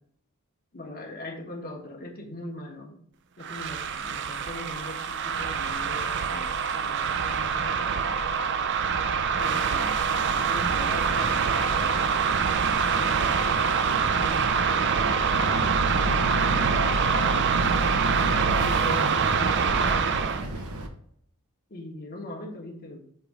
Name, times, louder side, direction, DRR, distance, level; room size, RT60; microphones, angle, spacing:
voice 1, 0.7-3.0 3.4-8.1 9.4-9.9 10.5-12.0 13.0-17.4 18.3-20.6 21.7-23.0, left 1 dB, 45° left, 0 dB, 1.3 m, -40 dB
sound 1, 3.4-20.4, right 6 dB, 55° right, 0.5 m, -25 dB
Boat Water vehicle, 10.1-20.9, right 1 dB, 85° right, 0.9 m, -32 dB
6.7 x 3.4 x 4.7 m, 0.66 s
head